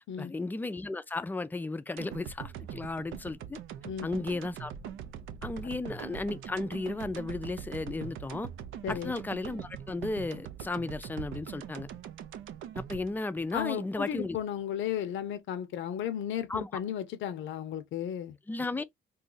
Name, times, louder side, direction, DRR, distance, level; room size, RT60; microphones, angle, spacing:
voice 1, 0.2-3.6 4.0-4.7 5.4-8.5 8.9-11.9 12.7-14.4 16.5-16.7 18.5-18.8, left 3 dB, 10° left, 0.4 m, -34 dB
sound 1, 2.0-14.2 14.6-14.7, right 9 dB, 80° right, 0.5 m, -42 dB
voice 2, 8.8-9.2 13.5-18.4, left 9 dB, 75° left, 0.6 m, -34 dB
2.7 x 2.3 x 3.9 m
cardioid pair, 90°, 20 cm